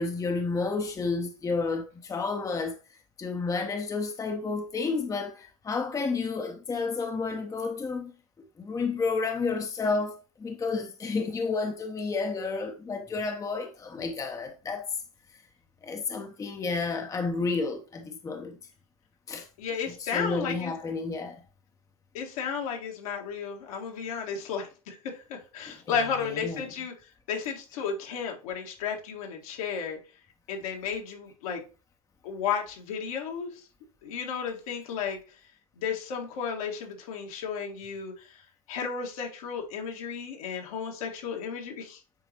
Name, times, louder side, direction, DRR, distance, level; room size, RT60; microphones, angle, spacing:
voice 1, 0.0-2.8 3.2-8.1 8.6-14.9 15.8-18.6 19.3-19.5 20.0-21.4 25.7-25.8 26.3-26.6, left 4 dB, 15° left, 0.8 m, -31 dB
voice 2, 19.6-20.7 22.1-26.9 27.3-30.0 30.5-31.6 32.2-33.5 34.0-35.2 35.8-38.4 38.7-42.0, left 6 dB, 70° left, 1.7 m, -33 dB
9.3 x 3.9 x 2.9 m
hypercardioid pair, 85°, 19 cm